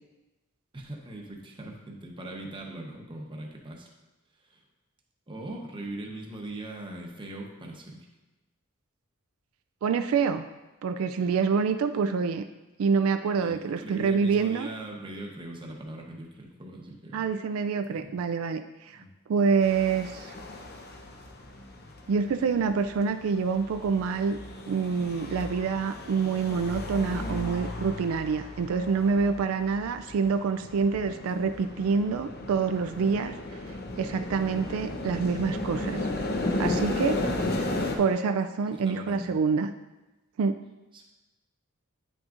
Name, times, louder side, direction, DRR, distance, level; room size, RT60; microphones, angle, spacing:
voice 1, 0.7-3.9 4.5-4.6 5.3-8.0 13.4-17.2 17.8-18.1 18.9-19.1 21.8-21.9 37.2-37.5 38.7-39.3 40.9-41.1, right 1 dB, 25° right, 0 dB, 0.9 m, -40 dB
voice 2, 9.8-10.5 10.8-12.4 12.8-14.7 17.1-19.0 19.3-20.3 22.1-24.4 24.7-33.3 34.0-36.1 36.6-37.2 38.0-39.7 40.4-40.6, right 5 dB, 80° right, 9 dB, 0.3 m, -26 dB
sound 1, 19.6-38.0, left 1 dB, 50° left, 0.8 m, -35 dB
9.2 x 6.1 x 2.5 m, 1.1 s
head